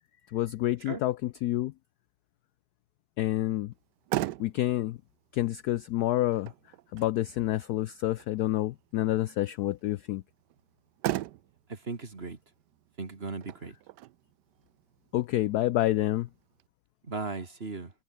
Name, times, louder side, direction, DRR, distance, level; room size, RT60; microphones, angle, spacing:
voice 1, 0.3-1.7 3.2-3.7 4.4-5.0 5.3-6.5 6.9-10.2 15.1-16.3, left 15 dB, 80° left, 0.8 m, -28 dB
Motor vehicle (road), 3.7-16.7, right 15 dB, 70° right, 1.1 m, -40 dB
voice 2, 11.7-12.4 13.0-13.7 17.1-17.9, right 3 dB, 30° right, 2.4 m, -37 dB
omnidirectional pair, 2.2 m